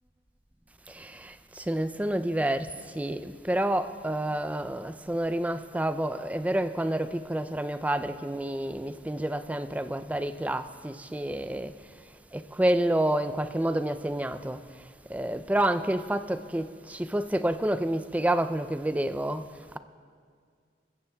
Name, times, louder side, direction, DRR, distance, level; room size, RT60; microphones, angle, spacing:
voice 1, 0.9-19.8, right 1 dB, 10° right, 0.3 m, -29 dB
21.5 x 15.5 x 2.3 m
head